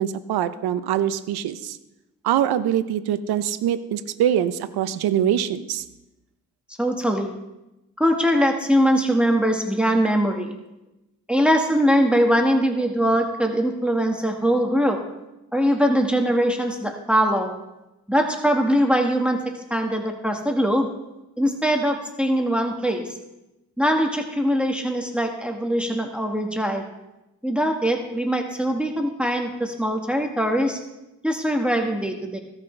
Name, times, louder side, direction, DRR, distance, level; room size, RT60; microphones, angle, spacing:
voice 1, 0.0-1.8 2.2-5.8, right 10 dB, 85° right, 13 dB, 0.7 m, -23 dB
voice 2, 6.8-7.4 8.0-10.5 11.3-15.0 15.5-17.6 18.1-19.4 19.7-20.9 21.4-23.2 23.8-26.9 27.4-30.8 31.2-32.4, equal, 5° right, 2 dB, 1.6 m, -22 dB
16.5 x 6.0 x 3.3 m, 0.96 s
supercardioid pair, 50°, 37 cm